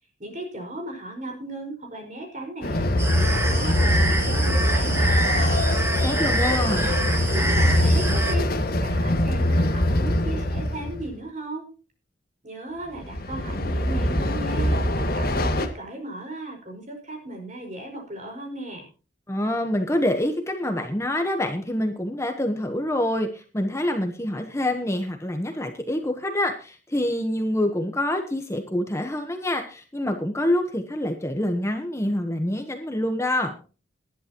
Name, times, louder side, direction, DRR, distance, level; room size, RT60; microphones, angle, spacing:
voice 1, 0.2-5.6 6.4-11.7 12.4-18.9, right 1 dB, 40° right, 3 dB, 5.1 m, -36 dB
Train, 2.6-11.1 12.9-15.7, left 1 dB, 50° left, 1.7 m, -23 dB
sound 1, 3.0-8.4, right 2 dB, 15° right, 1.6 m, -27 dB
voice 2, 6.0-6.8 19.3-33.5, left 1 dB, 15° left, 5 dB, 1.1 m, -26 dB
19.5 x 11.0 x 3.0 m, 0.36 s
head